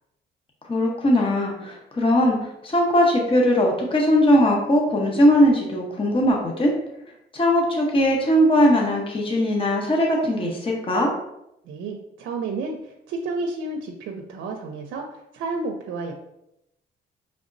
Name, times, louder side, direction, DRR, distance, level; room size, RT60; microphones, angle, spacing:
voice 1, 0.7-6.7 7.3-11.1, equal, 25° left, -1 dB, 0.9 m, -20 dB
voice 2, 11.7-16.1, right 3 dB, 85° right, 2 dB, 0.6 m, -31 dB
5.0 x 3.4 x 2.6 m, 0.83 s
cardioid pair, 90°, 20 cm